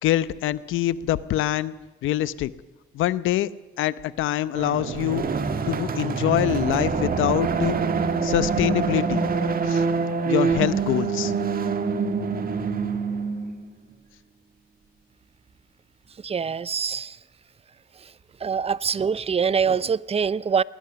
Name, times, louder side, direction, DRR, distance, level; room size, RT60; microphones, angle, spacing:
voice 1, 0.0-1.7 2.0-2.5 2.9-3.5 3.8-5.2 5.7-7.8 8.2-9.2 9.7-9.8 10.2-11.3, left 13 dB, 85° left, 16 dB, 0.9 m, -24 dB
sound 1, 4.5-13.7, right 5 dB, 45° right, 1.9 m, -25 dB
voice 2, 16.2-17.2 18.4-20.6, right 6 dB, 30° right, 20 dB, 0.6 m, -24 dB
21.0 x 18.5 x 7.0 m, 1.2 s
cardioid pair, 90°, 20 cm